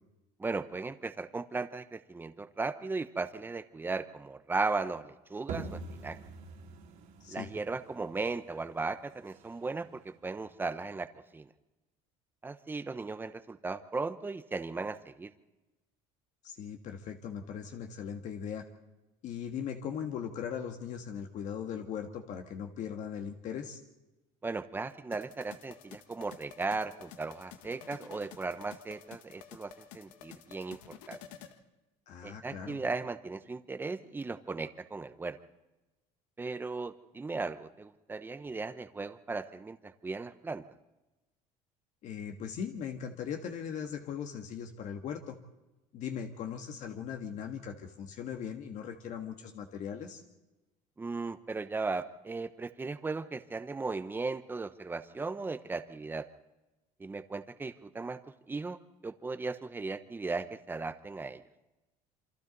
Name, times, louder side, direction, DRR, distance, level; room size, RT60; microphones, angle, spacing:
voice 1, 0.4-6.2 7.3-11.5 12.4-15.3 24.4-31.2 32.2-35.4 36.4-40.6 51.0-56.3 57.0-58.2 58.5-58.8 59.0-61.4, right 3 dB, 15° right, 11 dB, 1.0 m, -37 dB
sound 1, 5.5-10.9, right 4 dB, 65° right, 3.5 m, -46 dB
voice 2, 7.2-7.5 16.4-18.6 19.2-23.8 32.1-32.8 42.0-45.4 45.9-50.2, left 8 dB, 55° left, 4 dB, 1.7 m, -39 dB
sound 2, 25.1-31.6, left 10 dB, 90° left, 1.6 m, -52 dB
27.5 x 25.0 x 4.1 m, 1.1 s
cardioid pair, 120°, 15 cm